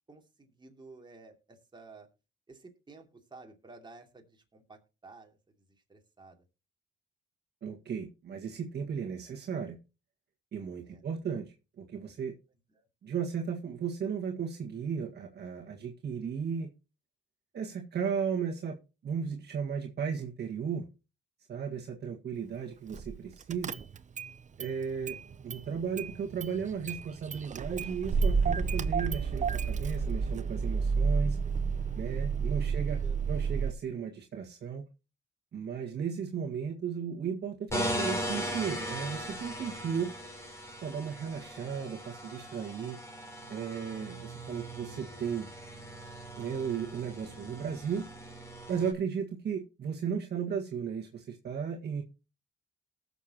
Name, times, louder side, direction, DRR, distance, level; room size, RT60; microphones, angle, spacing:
voice 1, 0.1-2.1 2.5-6.4 10.8-11.0 12.7-12.8 31.8-32.4 32.6-33.3, right 3 dB, 25° right, 2 dB, 2.8 m, -54 dB
voice 2, 7.6-9.8 10.5-11.5 11.8-12.3 13.0-16.7 17.5-18.8 19.0-20.9 21.5-23.8 24.6-25.2 25.4-31.4 32.0-33.0 33.3-34.9 35.5-40.1 40.8-43.0 43.5-45.5 46.4-48.1 48.7-52.0, right 7 dB, 55° right, 0 dB, 1.8 m, -35 dB
Car / Engine starting, 22.9-23.2 23.5-24.3 24.6-25.7 26.0-33.7, right 5 dB, 40° right, 0.8 m, -30 dB
sound 1, 37.7-48.9, equal, 15° left, 3.7 m, -39 dB
19.0 x 7.0 x 3.0 m, 0.30 s
cardioid pair, 90°, 20 cm